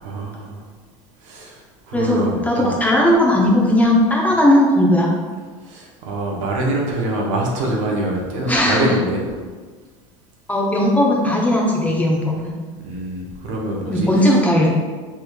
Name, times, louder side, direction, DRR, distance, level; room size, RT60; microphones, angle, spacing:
voice 1, 0.0-0.6 1.2-1.6 1.9-2.7 5.7-9.2 12.8-14.1, right 1 dB, 80° right, -1 dB, 0.8 m, -24 dB
voice 2, 1.9-5.1 8.5-8.9 10.5-12.6 13.9-14.7, left 1 dB, 10° left, -3 dB, 0.6 m, -17 dB
3.3 x 3.3 x 2.2 m, 1.5 s
supercardioid pair, 115°, 16 cm